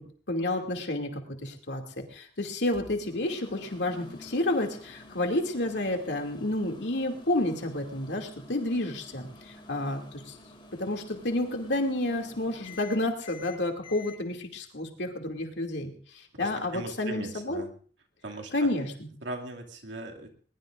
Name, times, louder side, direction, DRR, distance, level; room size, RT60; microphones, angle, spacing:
voice 1, 0.3-10.3 10.8-17.6 18.5-19.1, left 1 dB, 65° left, 2 dB, 2.6 m, -30 dB
Microwave oven, 2.7-14.2, left 2 dB, 25° left, 3.3 m, -50 dB
voice 2, 16.3-17.7 18.2-18.7 19.2-20.3, right 2 dB, 80° right, 1 dB, 2.4 m, -39 dB
21.0 x 21.0 x 2.6 m, 0.43 s
head